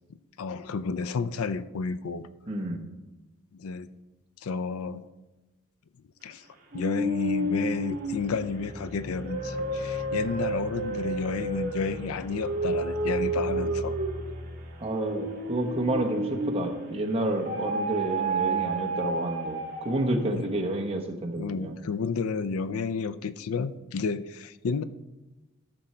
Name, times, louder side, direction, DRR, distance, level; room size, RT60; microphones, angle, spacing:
voice 1, 0.4-2.3 3.5-3.9 4.4-5.1 6.2-6.4 6.7-14.0 20.3-20.4 21.4-24.8, left 5 dB, 80° left, 15 dB, 0.5 m, -31 dB
voice 2, 2.5-2.8 14.8-21.7, right 1 dB, 25° right, 1 dB, 1.1 m, -29 dB
Scary Wood, 6.7-16.9 17.5-20.2, right 2 dB, 45° right, 2.4 m, -31 dB
13.0 x 6.2 x 4.4 m, 1.1 s
head